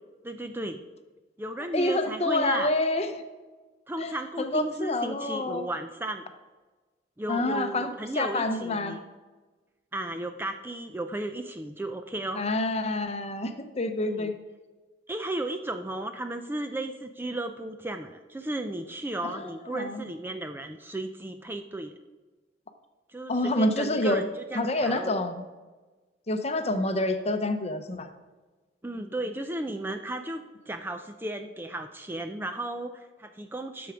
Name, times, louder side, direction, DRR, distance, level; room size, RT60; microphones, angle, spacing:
voice 1, 0.2-0.8 1.4-2.7 3.9-6.2 7.2-9.0 9.9-12.4 14.0-14.3 15.1-22.0 23.1-25.2 28.8-33.9, right 1 dB, 10° right, 7 dB, 0.4 m, -34 dB
voice 2, 1.7-3.1 4.0-5.7 7.3-9.0 12.3-14.3 19.2-20.1 23.3-24.2 24.5-25.4 26.3-28.1, left 2 dB, 35° left, 8 dB, 0.8 m, -28 dB
11.0 x 7.0 x 5.0 m, 1.3 s
head